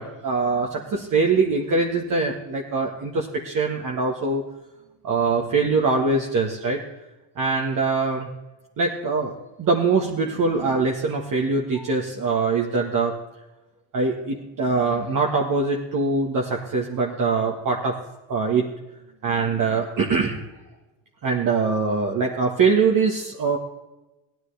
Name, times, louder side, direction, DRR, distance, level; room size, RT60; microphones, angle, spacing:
voice 1, 0.0-4.4 5.0-6.8 7.4-8.3 8.8-13.1 13.9-18.0 18.3-18.7 19.2-20.4 21.2-23.6, right 4 dB, 45° right, 0 dB, 1.6 m, -23 dB
16.5 x 12.5 x 3.4 m, 1.0 s
supercardioid pair, 80°, 43 cm